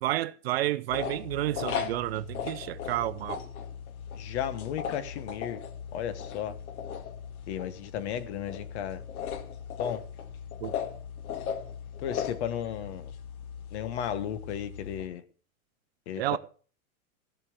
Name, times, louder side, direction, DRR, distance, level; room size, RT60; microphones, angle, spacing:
voice 1, 0.0-3.4 10.6-10.7 16.2-16.4, right 15 dB, 45° right, 0.6 m, -30 dB
sound 1, 0.9-15.1, left 8 dB, 90° left, 2.1 m, -38 dB
voice 2, 4.1-5.6 5.9-6.6 7.5-9.0 9.8-10.0 12.0-13.1 13.7-15.2 16.1-16.4, left 9 dB, 50° left, 1.4 m, -34 dB
16.5 x 5.8 x 7.9 m
supercardioid pair, 165°, 42 cm